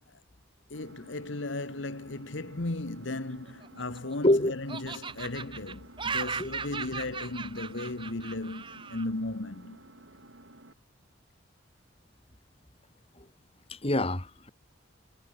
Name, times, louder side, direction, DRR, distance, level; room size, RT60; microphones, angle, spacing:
voice 1, 0.7-9.8, left 2 dB, 75° left, 1.5 m, -36 dB
Engine, 0.7-10.7, right 1 dB, 75° right, 6.5 m, -53 dB
Laughter, 3.5-4.3 4.7-9.1, right 5 dB, 25° right, 1.1 m, -37 dB
voice 2, 13.7-14.5, left 1 dB, 30° left, 2.4 m, -26 dB
head